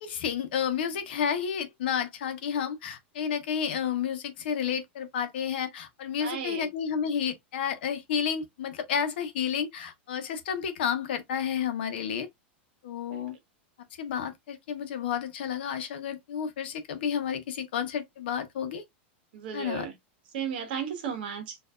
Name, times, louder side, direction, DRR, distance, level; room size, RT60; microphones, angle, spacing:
voice 1, 0.0-12.3 12.8-13.4 14.0-18.8 19.5-19.9, left 8 dB, 60° left, 1.0 m, -31 dB
voice 2, 6.2-6.7 13.1-13.4 19.3-19.9 20.3-21.6, right 7 dB, 55° right, 1.4 m, -35 dB
4.4 x 2.7 x 2.4 m
supercardioid pair, 180°, 6 cm